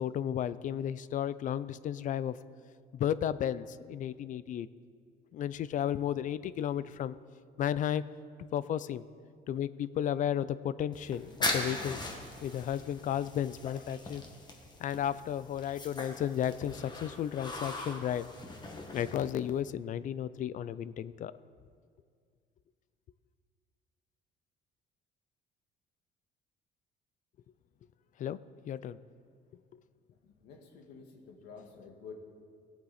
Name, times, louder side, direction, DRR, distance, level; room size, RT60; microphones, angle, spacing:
voice 1, 0.0-2.4 2.9-4.7 5.3-7.1 7.6-8.0 8.5-9.0 9.5-12.1 12.4-14.2 14.8-18.3 18.9-21.3 28.2-28.4 28.7-29.0, left 10 dB, 50° left, 17 dB, 0.4 m, -33 dB
sound 1, 10.9-19.6, left 2 dB, 25° left, 1.6 m, -40 dB
voice 2, 30.2-32.1, left 5 dB, 90° left, 3 dB, 1.8 m, -50 dB
17.5 x 8.1 x 4.2 m, 2.1 s
cardioid pair, 110°, 17 cm